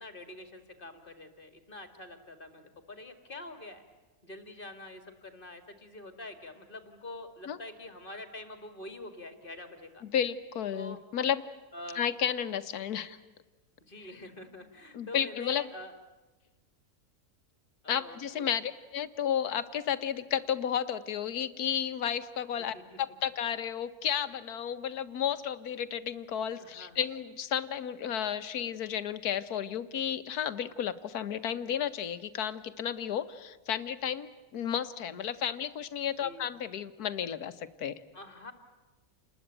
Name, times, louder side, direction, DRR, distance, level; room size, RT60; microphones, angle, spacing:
voice 1, 0.0-3.8 4.2-10.0 10.7-11.0 11.7-12.0 13.9-15.9 17.8-18.7 22.7-23.0 26.6-27.0 36.2-36.4 38.1-38.5, left 2 dB, 35° left, 8 dB, 2.1 m, -46 dB
voice 2, 10.0-11.4 11.9-13.2 14.9-15.7 17.9-38.0, left 9 dB, 75° left, 11 dB, 1.5 m, -32 dB
28.5 x 20.5 x 8.9 m, 1.2 s
omnidirectional pair, 1.6 m